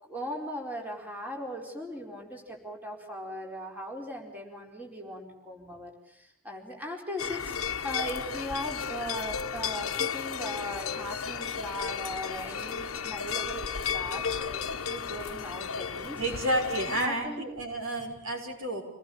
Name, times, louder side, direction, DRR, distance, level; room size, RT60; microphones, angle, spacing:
voice 1, 0.0-16.2 16.9-17.4, equal, 10° right, 0 dB, 4.5 m, -38 dB
sound 1, 7.2-17.1, left 7 dB, 80° left, 1.0 m, -34 dB
voice 2, 16.2-18.8, right 1 dB, 80° right, 3 dB, 6.3 m, -30 dB
28.5 x 19.0 x 8.7 m, 0.82 s
head